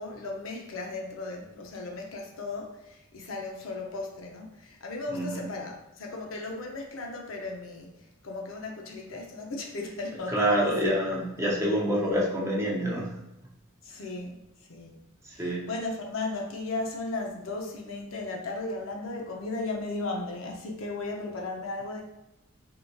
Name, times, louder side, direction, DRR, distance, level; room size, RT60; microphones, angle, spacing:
voice 1, 0.0-7.9 8.2-11.0 13.8-14.4 14.7-15.0 15.3-22.0, left 2 dB, 65° left, 0 dB, 0.6 m, -36 dB
voice 2, 5.1-5.4 10.3-13.1 15.2-15.6, equal, 15° right, -4 dB, 0.6 m, -27 dB
3.7 x 2.6 x 2.3 m, 0.90 s
head